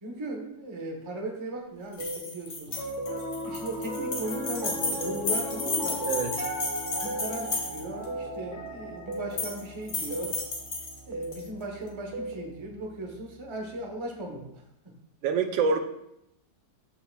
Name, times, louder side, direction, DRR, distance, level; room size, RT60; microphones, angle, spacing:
voice 1, 0.0-2.8 3.4-6.0 6.9-10.4 11.1-14.9, right 2 dB, 20° right, 1 dB, 0.9 m, -37 dB
sound 1, 1.9-8.1 9.1-9.6 9.9-11.4, left 3 dB, 45° left, 2.0 m, -33 dB
sound 2, 2.0-2.2 3.0-3.2 4.0-4.2 5.0-5.2 6.0-6.2 7.0-7.3 8.1-8.3 9.1-9.3 10.1-10.3 11.1-11.3 12.1-12.3, right 2 dB, 55° right, 0.7 m, -35 dB
Piano, 2.7-13.0, equal, 30° left, 1.3 m, -38 dB
voice 2, 6.1-6.5 15.2-15.8, right 5 dB, 80° right, 6 dB, 1.4 m, -26 dB
13.5 x 5.7 x 2.4 m, 0.80 s
omnidirectional pair, 2.1 m